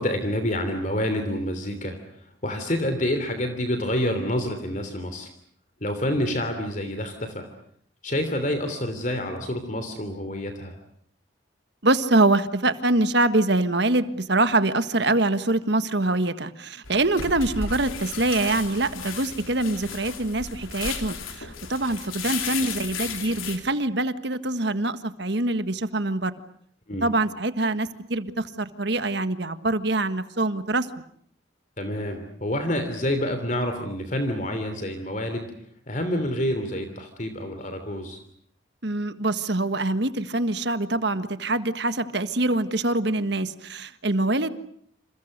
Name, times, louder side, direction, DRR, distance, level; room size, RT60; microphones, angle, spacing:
voice 1, 0.0-2.0 2.4-5.3 5.8-7.5 8.0-10.7 26.9-27.1 31.8-35.5 35.9-38.2, left 1 dB, 40° left, 7 dB, 3.1 m, -28 dB
voice 2, 11.8-26.3 27.0-30.9 38.8-44.5, right 2 dB, 55° right, 11 dB, 1.5 m, -24 dB
sound 1, 16.8-23.6, left 6 dB, 90° left, 4.1 m, -34 dB
28.5 x 28.5 x 6.7 m, 0.65 s
head